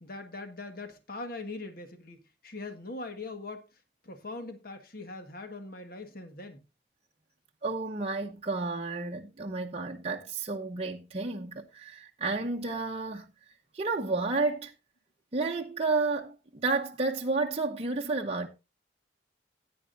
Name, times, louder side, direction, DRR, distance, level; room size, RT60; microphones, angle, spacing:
voice 1, 0.0-3.6 4.0-6.6, left 2 dB, 55° left, 1.5 m, -41 dB
voice 2, 7.6-13.3 13.7-14.7 15.3-18.5, right 3 dB, 35° right, 0.7 m, -31 dB
15.5 x 9.5 x 2.6 m
head